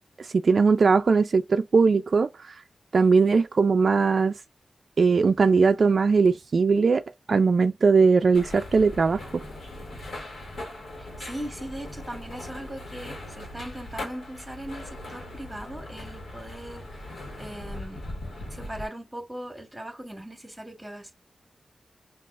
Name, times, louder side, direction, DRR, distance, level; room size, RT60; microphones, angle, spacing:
voice 1, 0.2-2.5 2.9-4.3 5.0-7.0 7.3-9.2, right 4 dB, 65° right, 0.3 m, -20 dB
sound 1, 8.3-18.9, left 1 dB, 90° left, 1.3 m, -39 dB
voice 2, 11.0-18.1 18.5-21.1, right 1 dB, 5° right, 1.8 m, -39 dB
6.0 x 2.4 x 2.4 m
wide cardioid pair, 90°, 0 cm